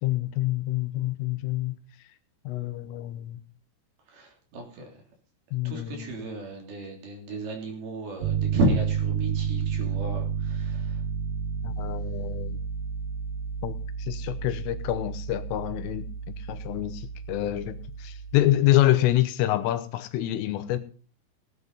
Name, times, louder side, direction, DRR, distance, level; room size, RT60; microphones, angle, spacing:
voice 1, 0.0-1.8 2.5-3.4 5.5-6.1 11.6-12.6 13.6-13.7 14.0-20.8, left 14 dB, 80° left, 10 dB, 3.5 m, -27 dB
voice 2, 4.1-5.0 5.6-11.0, right 1 dB, 50° right, 2 dB, 4.8 m, -32 dB
Piano, 8.2-18.5, right 7 dB, 85° right, 4.6 m, -31 dB
18.0 x 9.6 x 4.1 m, 0.40 s
omnidirectional pair, 5.9 m